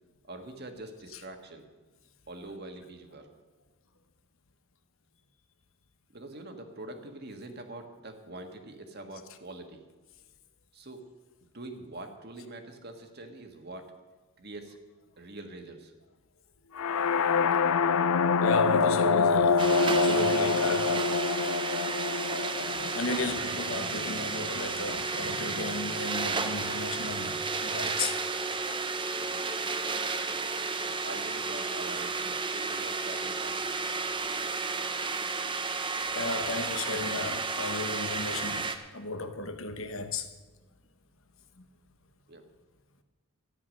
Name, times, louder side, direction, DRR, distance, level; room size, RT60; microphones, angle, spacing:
voice 1, 0.3-1.6 2.3-3.3 6.1-9.8 10.7-11.0 11.5-13.9 14.4-14.8 15.2-15.9 29.1-29.4 30.8-33.7 42.3-42.4, right 2 dB, 45° right, 1.6 m, -44 dB
sound 1, 16.8-24.6, left 5 dB, 85° left, 0.5 m, -26 dB
voice 2, 18.3-21.1 21.4-21.5 22.6-28.2 36.1-40.3 41.6-41.7, left 2 dB, 70° left, 1.1 m, -34 dB
sound 2, 19.6-38.8, right 4 dB, 20° right, 0.7 m, -32 dB
14.0 x 10.0 x 6.4 m
head